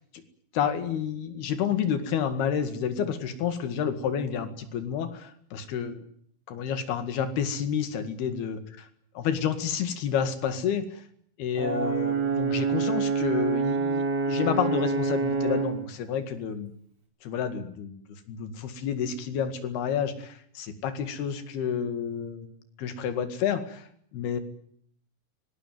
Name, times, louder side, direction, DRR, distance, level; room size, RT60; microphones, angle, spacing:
voice 1, 0.5-6.1 6.5-8.6 9.2-11.0 11.4-16.7 17.2-18.0 18.3-22.5 22.8-24.4, left 8 dB, 80° left, 9 dB, 3.9 m, -30 dB
Brass instrument, 11.6-15.8, right 5 dB, 40° right, 5.8 m, -26 dB
25.0 x 19.0 x 9.3 m, 0.66 s
omnidirectional pair, 4.4 m